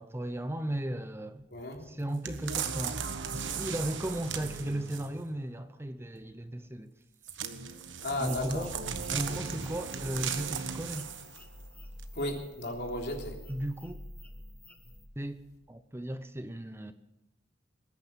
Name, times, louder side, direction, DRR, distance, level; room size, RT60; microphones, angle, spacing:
voice 1, 0.0-1.5 1.8-6.9 8.2-8.8 9.1-11.1 13.5-14.0 15.2-15.4 15.7-16.9, right 1 dB, 15° right, 0.6 m, -36 dB
voice 2, 1.5-1.9 8.0-8.7 12.1-13.4, left 1 dB, 60° left, 3.4 m, -34 dB
sound 1, 2.2-5.2 7.2-11.4 12.0-12.1, right 6 dB, 80° right, 1.2 m, -37 dB
sound 2, 8.3-15.1, left 1 dB, 10° left, 1.3 m, -48 dB
20.0 x 9.6 x 7.3 m
head